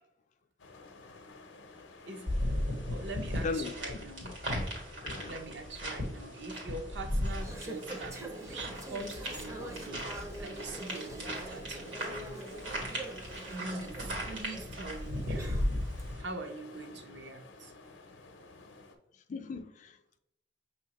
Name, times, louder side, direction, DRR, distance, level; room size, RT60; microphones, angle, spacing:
sound 1, 0.6-19.0, left 3 dB, 85° left, 0.6 m, -53 dB
sound 2, 2.3-16.2, equal, 85° right, 1.7 m, -37 dB
voice 1, 2.9-4.3 5.2-13.0 13.4-15.6 16.2-17.7 18.6-18.7, right 2 dB, 65° right, 0.6 m, -44 dB
Conversation / Chatter, 7.1-16.0, right 1 dB, 15° right, 0.5 m, -45 dB
voice 2, 19.3-20.2, left 4 dB, 40° left, 0.3 m, -37 dB
6.3 x 2.9 x 2.9 m
head